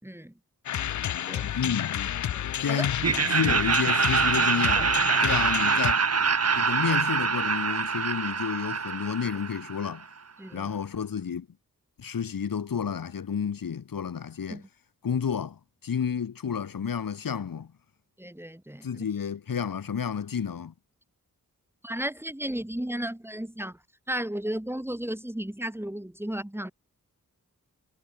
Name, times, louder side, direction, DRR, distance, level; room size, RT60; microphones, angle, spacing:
voice 1, 0.0-0.3 1.3-1.5 2.3-2.9 3.5-3.6 4.8-4.9 5.2-5.4 10.4-10.7 14.5-14.7 18.2-19.1 21.8-23.8 24.1-26.7, right 1 dB, 5° right, 3.1 m, -34 dB
sound 1, 0.7-5.9, left 10 dB, 60° left, 0.4 m, -30 dB
voice 2, 1.6-2.0 2.6-3.0 3.3-4.9 5.2-6.0 6.5-10.0 10.5-11.5 12.0-14.6 15.0-17.7 18.8-20.7, left 7 dB, 75° left, 1.4 m, -30 dB
Laughter, 3.0-10.0, right 5 dB, 50° right, 1.3 m, -25 dB
wide cardioid pair, 75°, 34 cm